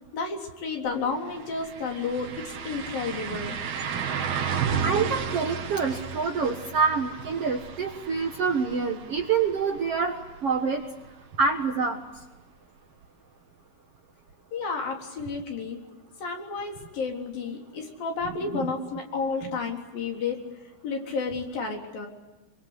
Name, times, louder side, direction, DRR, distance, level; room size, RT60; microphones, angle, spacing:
voice 1, 0.1-3.6 14.5-15.8 16.2-20.4 20.8-22.1, left 4 dB, 65° left, 2 dB, 5.4 m, -31 dB
sound 1, 0.9-1.0 1.3-11.1 11.4-11.5 14.3-14.4, right 7 dB, 80° right, 4.3 m, -33 dB
voice 2, 4.8-10.8 11.4-12.0 18.5-18.7, right 5 dB, 55° right, 4 dB, 1.8 m, -26 dB
26.5 x 24.5 x 8.1 m, 1.1 s
omnidirectional pair, 4.4 m